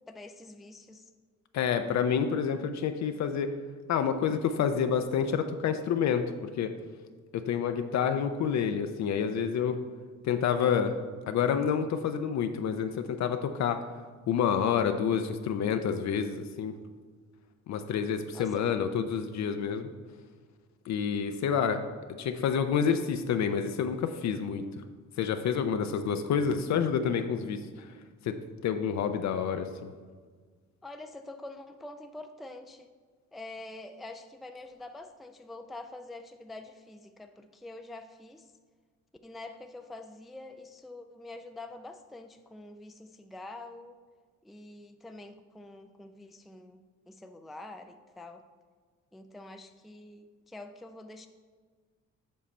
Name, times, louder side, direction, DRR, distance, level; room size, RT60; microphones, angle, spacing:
voice 1, 0.1-1.1 18.3-18.7 30.8-32.9 33.3-38.5 39.2-44.0 44.4-46.8 47.1-48.4 49.1-51.3, left 2 dB, ahead, 6 dB, 0.4 m, -46 dB
voice 2, 1.5-3.5 3.9-6.7 7.3-9.8 10.2-11.0 11.3-13.8 14.3-16.7 17.7-19.9 20.9-21.8 22.2-24.6 25.2-27.9 28.2-28.4 28.6-29.9, left 7 dB, 65° left, 7 dB, 0.6 m, -28 dB
7.4 x 5.6 x 4.3 m, 1.5 s
cardioid pair, 90°, 30 cm